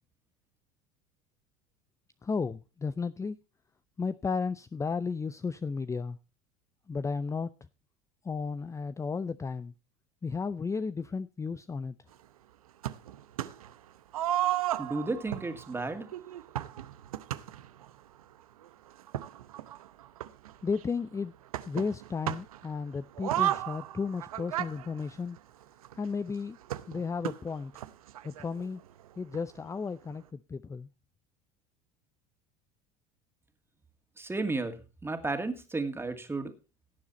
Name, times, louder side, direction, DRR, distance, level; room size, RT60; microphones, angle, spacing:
voice 1, 2.2-3.4 4.0-6.2 6.9-7.5 8.2-9.7 10.2-11.9 20.6-21.3 21.7-25.4 26.0-26.6 26.9-27.7 28.2-28.8 29.2-30.9, left 5 dB, 15° left, 15 dB, 0.5 m, -33 dB
sound 1, 12.8-13.7 14.1-17.9 18.6-18.7 19.0-20.9 21.5-22.7 23.1-25.9 26.7-28.7 29.0-29.1 29.3-29.4 30.1-30.2, right 13 dB, 90° right, 0.8 m, -34 dB
voice 2, 14.8-16.1 34.2-36.5, right 3 dB, 15° right, 6 dB, 2.2 m, -33 dB
17.0 x 7.3 x 4.2 m, 0.31 s
hypercardioid pair, 85°, 18 cm